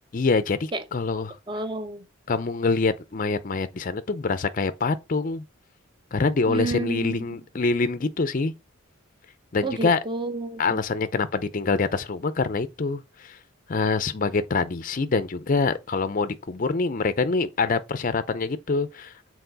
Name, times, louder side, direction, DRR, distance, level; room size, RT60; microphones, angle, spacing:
voice 1, 0.1-1.4 2.3-5.4 6.1-8.5 9.5-10.0 10.6-13.4 13.7-19.3, left 4 dB, 40° left, 0.5 m, -25 dB
voice 2, 1.5-2.0 6.5-7.2 9.6-10.8, right 3 dB, 25° right, 0.8 m, -30 dB
6.8 x 4.2 x 3.9 m
head